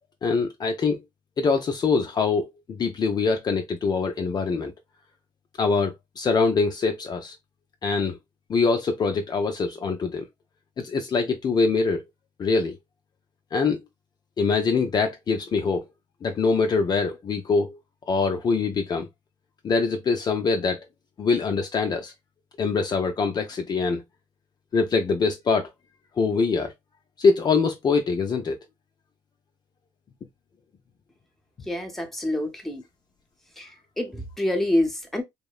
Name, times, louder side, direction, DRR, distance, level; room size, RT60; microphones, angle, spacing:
voice 1, 0.2-1.0 1.4-4.7 5.6-7.4 7.8-8.2 8.5-10.3 10.8-12.0 12.4-12.8 13.5-13.8 14.4-15.8 16.2-17.8 18.1-19.1 19.6-20.8 21.2-22.1 22.6-24.0 24.7-25.7 26.2-26.7 27.2-28.6, left 4 dB, 40° left, 0.5 m, -24 dB
voice 2, 31.7-32.8 33.6-35.2, left 1 dB, ahead, 0.8 m, -27 dB
2.8 x 2.0 x 2.3 m
supercardioid pair, 80°, 11 cm